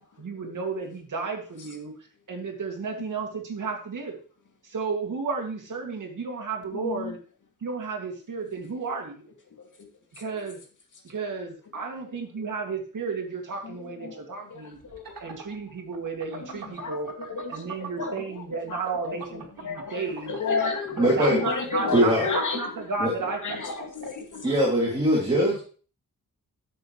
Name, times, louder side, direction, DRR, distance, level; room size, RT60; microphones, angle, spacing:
voice 1, 0.2-1.9 2.3-4.2 4.6-7.2 7.6-9.3 10.1-10.6 11.0-14.8 15.2-17.1 17.5-20.4 20.9-23.7, right 4 dB, 65° right, 2 dB, 2.4 m, -33 dB
voice 2, 6.7-7.1 14.0-14.2 14.5-14.6 14.9-15.0 16.8-16.9 17.3-18.2 19.6-20.0 20.3-22.7 23.4-24.4, left 4 dB, 60° left, 2 dB, 2.3 m, -30 dB
sound 1, 14.8-18.4 18.7-24.1, right 5 dB, 85° right, 2.3 m, -39 dB
voice 3, 21.0-21.5 21.9-22.3 23.0-23.1 24.4-25.6, right 1 dB, 15° right, -5 dB, 2.7 m, -22 dB
11.5 x 7.7 x 3.2 m, 0.40 s
wide cardioid pair, 175°, 34 cm